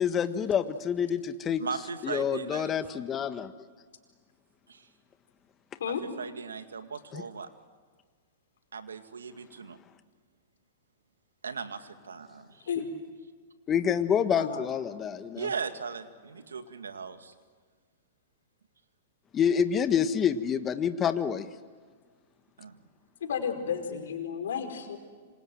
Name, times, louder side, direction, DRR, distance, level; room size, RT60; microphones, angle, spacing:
voice 1, 0.0-1.6 2.0-3.5 7.1-7.2 13.7-15.5 19.3-21.5, left 8 dB, 25° left, 10 dB, 1.4 m, -27 dB
voice 2, 1.6-2.7 4.7-4.9 5.8-7.5 8.7-9.8 11.4-12.6 15.4-17.3 22.6-22.8, right 5 dB, 90° right, 8 dB, 2.1 m, -38 dB
voice 3, 23.2-25.0, left 7 dB, 75° left, 5 dB, 4.8 m, -32 dB
27.5 x 26.0 x 7.8 m, 1.5 s
hypercardioid pair, 120°, 0 cm